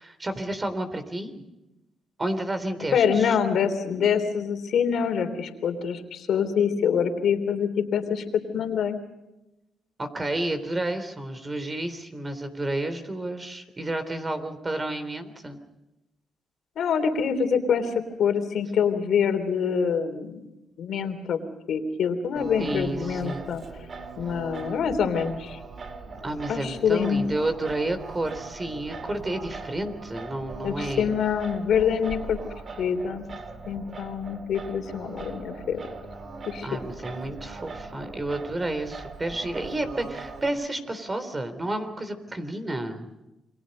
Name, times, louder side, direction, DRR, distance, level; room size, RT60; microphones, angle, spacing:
voice 1, 0.0-1.4 2.2-3.4 10.0-15.6 22.6-23.4 26.2-31.1 36.6-43.1, right 1 dB, 25° right, 9 dB, 3.5 m, -31 dB
voice 2, 2.9-8.2 8.5-9.0 16.8-20.5 20.8-21.4 21.7-23.6 24.2-25.6 26.5-27.2 30.6-32.4 32.8-33.3 33.7-35.8 36.5-36.7, left 7 dB, 65° left, 7 dB, 3.4 m, -25 dB
Singing, 22.4-40.5, right 3 dB, 45° right, 2.6 m, -40 dB
29.0 x 23.5 x 5.4 m, 0.96 s
cardioid pair, 90°, 0 cm